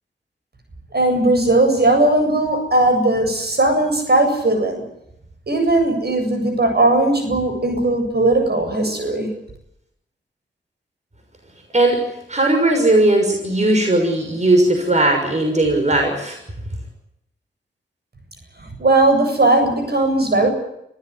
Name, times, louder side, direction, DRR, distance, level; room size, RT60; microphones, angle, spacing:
voice 1, 0.9-4.8 5.5-9.3 18.8-20.5, right 2 dB, 55° right, 5 dB, 7.9 m, -17 dB
voice 2, 12.3-16.4, right 2 dB, 35° right, 3 dB, 6.3 m, -17 dB
26.0 x 15.5 x 9.7 m, 0.80 s
cardioid pair, 50°, 20 cm